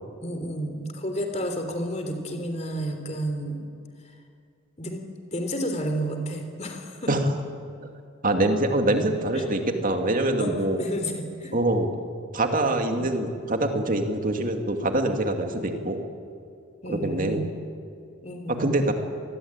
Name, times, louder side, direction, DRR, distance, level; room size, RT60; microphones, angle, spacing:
voice 1, 0.2-3.7 4.8-5.0 5.3-7.1 9.4-9.5 10.4-11.5 13.0-13.1 16.8-17.5 18.2-18.7, equal, 30° left, 5 dB, 3.5 m, -31 dB
voice 2, 8.2-10.8 11.5-11.9 12.3-16.0 16.9-17.4 18.6-18.9, right 1 dB, 40° right, 4 dB, 2.5 m, -24 dB
25.5 x 21.0 x 8.9 m, 2.4 s
head